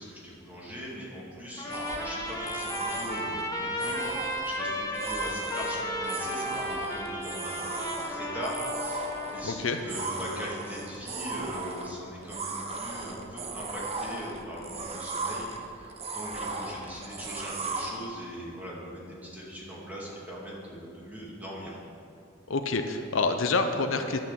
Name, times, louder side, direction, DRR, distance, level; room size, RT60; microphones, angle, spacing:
voice 1, 0.0-21.8, equal, 10° right, -6 dB, 2.3 m, -40 dB
Trumpet, 1.6-9.5, equal, 20° left, 1.1 m, -34 dB
sound 1, 1.7-17.9, right 3 dB, 30° right, 0.8 m, -37 dB
voice 2, 9.4-9.8 22.5-24.2, left 3 dB, 80° left, 6 dB, 0.7 m, -27 dB
11.0 x 6.0 x 7.5 m, 2.5 s
head